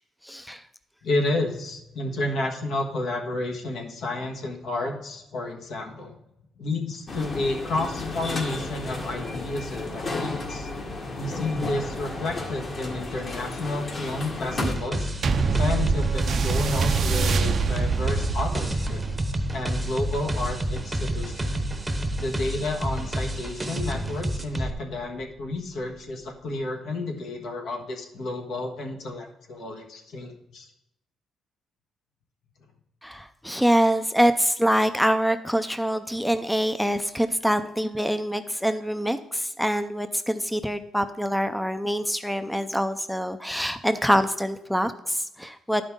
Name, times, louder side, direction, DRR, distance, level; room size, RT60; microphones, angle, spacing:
voice 1, 0.2-0.6 33.0-45.8, equal, ahead, 10 dB, 0.4 m, -25 dB
voice 2, 1.0-6.1 6.6-10.7 11.2-15.1 15.5-19.0 19.5-21.6 22.2-30.7, left 2 dB, 75° left, 2 dB, 1.4 m, -31 dB
sound 1, 7.1-14.7, left 2 dB, 40° left, 1.5 m, -33 dB
sound 2, 14.6-24.7, right 1 dB, 15° right, 0.8 m, -30 dB
sound 3, 15.2-24.0 24.8-24.9, right 5 dB, 55° right, 0.5 m, -27 dB
11.5 x 5.2 x 3.6 m, 0.82 s
cardioid pair, 90°, 0 cm